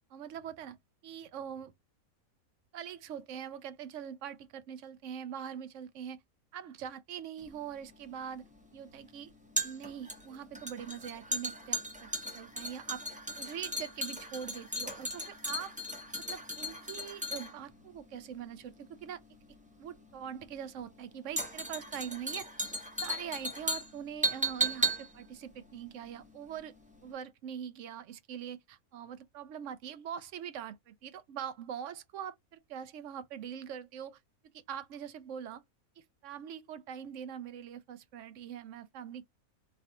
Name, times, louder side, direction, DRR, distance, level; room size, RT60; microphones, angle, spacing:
voice 1, 0.1-0.8 1.0-1.7 2.7-6.2 6.5-8.5 8.7-9.3 9.6-13.0 13.4-15.7 16.1-19.2 19.8-22.5 23.0-26.7 27.0-34.2 34.5-35.6 36.0-39.2, right 9 dB, 65° right, 0.8 m, -43 dB
sound 1, 7.4-26.7 26.9-27.1, right 1 dB, 5° right, 0.7 m, -37 dB
3.2 x 2.4 x 2.7 m
omnidirectional pair, 1.5 m